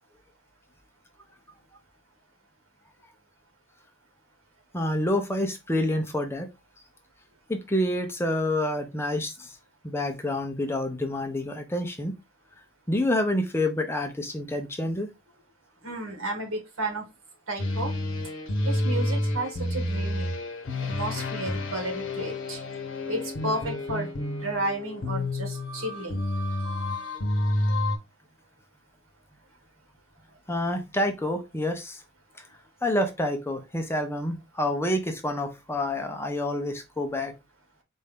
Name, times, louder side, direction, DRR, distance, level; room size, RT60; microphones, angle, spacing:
voice 1, 4.7-6.5 7.5-9.6 9.8-12.2 12.9-15.1 30.5-32.0 32.8-37.3, left 1 dB, 10° left, 0.6 m, -28 dB
voice 2, 15.8-17.1 17.5-17.9 18.6-20.3 20.8-22.6 23.1-26.2, right 2 dB, 85° right, 1.5 m, -32 dB
sound 1, 17.6-28.0, left 1 dB, 65° left, 0.9 m, -29 dB
4.3 x 2.6 x 3.5 m
head